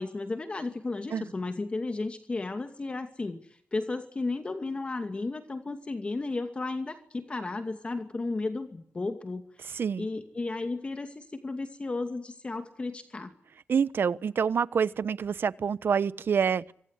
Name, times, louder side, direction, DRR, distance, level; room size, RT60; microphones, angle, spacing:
voice 1, 0.0-3.4 3.7-9.7 10.0-13.3, left 3 dB, 25° left, 2.5 m, -34 dB
voice 2, 9.7-10.1 13.7-16.7, right 6 dB, 55° right, 1.1 m, -27 dB
26.0 x 25.5 x 8.4 m
wide cardioid pair, 170°, 4 cm